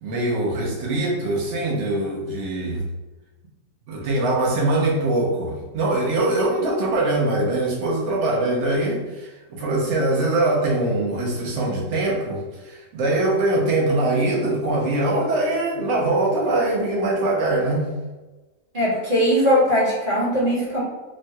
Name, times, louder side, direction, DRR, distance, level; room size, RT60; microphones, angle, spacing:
voice 1, 0.0-2.8 3.9-17.9, right 2 dB, 65° right, -4 dB, 1.0 m, -22 dB
voice 2, 18.7-20.8, equal, 40° right, -7 dB, 1.2 m, -20 dB
3.0 x 2.2 x 2.7 m, 1.1 s
omnidirectional pair, 1.4 m